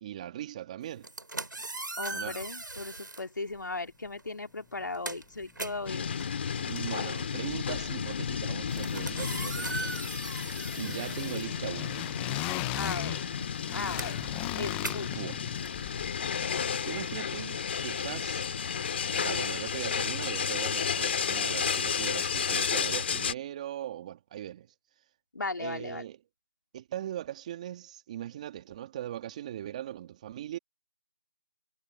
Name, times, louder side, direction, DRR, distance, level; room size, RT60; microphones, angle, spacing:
voice 1, 0.0-1.1 2.1-2.4 6.6-10.0 10.7-12.0 15.1-15.4 16.9-18.4 19.1-24.7 25.6-26.2 26.7-30.6, right 12 dB, 20° right, 2.0 m, -39 dB
sound 1, 0.9-3.3 4.2-4.4 4.7-12.2 12.5-17.1, right 2 dB, 85° right, 6.7 m, -40 dB
voice 2, 2.0-6.3 11.2-11.7 12.7-13.3 13.7-15.1 25.3-26.1, left 3 dB, 75° left, 2.8 m, -37 dB
sound 2, 5.4-5.5 5.8-6.9 7.2-19.4, left 23 dB, 5° left, 0.5 m, -41 dB
sound 3, 5.9-23.3, left 7 dB, 35° left, 2.4 m, -32 dB
figure-of-eight pair, 165°, 10 cm